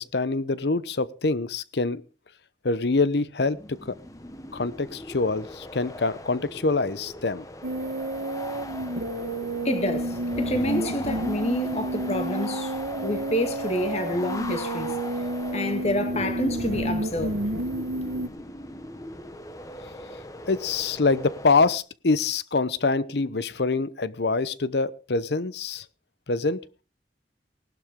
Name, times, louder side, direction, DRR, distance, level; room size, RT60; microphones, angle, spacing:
voice 1, 0.0-2.0 2.6-4.0 4.5-7.4 20.5-25.8 26.3-26.6, left 3 dB, 70° left, 0.8 m, -25 dB
sound 1, 3.4-21.8, left 1 dB, 20° left, 1.2 m, -40 dB
sound 2, 7.6-18.3, right 1 dB, 75° right, 1.3 m, -30 dB
voice 2, 9.6-12.7 13.0-15.0 15.5-17.4, left 1 dB, 35° left, 2.0 m, -28 dB
19.0 x 12.0 x 3.7 m
head